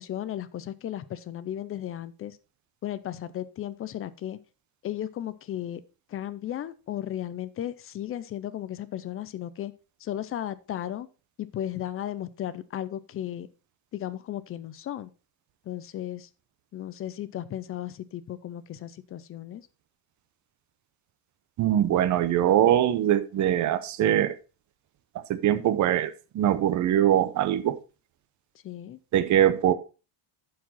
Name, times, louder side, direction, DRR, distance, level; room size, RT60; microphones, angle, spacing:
voice 1, 0.0-2.4 2.8-4.4 4.8-5.8 6.1-9.7 10.0-11.1 11.4-13.5 13.9-15.1 15.7-16.3 16.7-19.7 28.6-29.0, left 11 dB, 30° left, 0.4 m, -35 dB
voice 2, 21.6-24.4 25.1-27.8 29.1-29.7, right 11 dB, 35° right, 0.7 m, -22 dB
11.0 x 4.8 x 4.1 m
cardioid pair, 155°, 50 cm